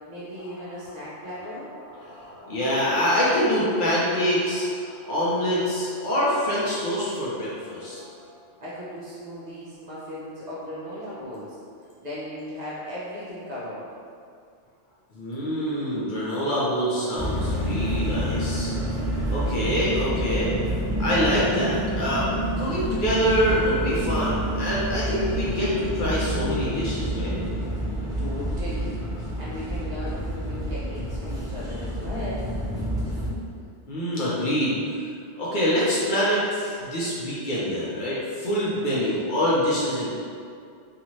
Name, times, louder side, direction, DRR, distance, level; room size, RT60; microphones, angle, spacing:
voice 1, 0.1-1.7 8.6-11.6 12.0-13.9 28.2-29.0 29.4-32.5, left 1 dB, 50° right, -9 dB, 0.6 m, -37 dB
voice 2, 2.0-8.1 15.1-18.7 19.3-20.5 21.0-22.3 22.6-27.3 33.9-34.8 35.3-40.1, equal, 55° left, -8 dB, 0.7 m, -25 dB
sound 1, 17.2-33.3, equal, 5° right, 0.4 m, -28 dB
2.6 x 2.4 x 3.0 m, 2.3 s
omnidirectional pair, 1.1 m